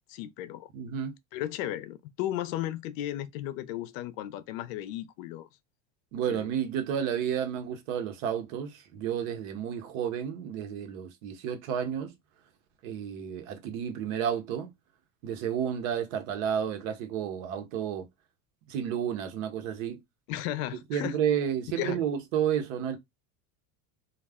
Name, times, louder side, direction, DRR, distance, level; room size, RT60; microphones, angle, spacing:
voice 1, 0.1-0.7 1.3-5.5 6.3-6.5 20.3-21.2 21.7-22.0, left 13 dB, 90° left, 0.5 m, -35 dB
voice 2, 0.7-1.2 6.1-12.1 12.8-14.7 15.2-18.1 18.7-20.0 20.9-23.0, right 9 dB, 85° right, 0.8 m, -31 dB
2.4 x 2.1 x 3.4 m
cardioid pair, 160°, 39 cm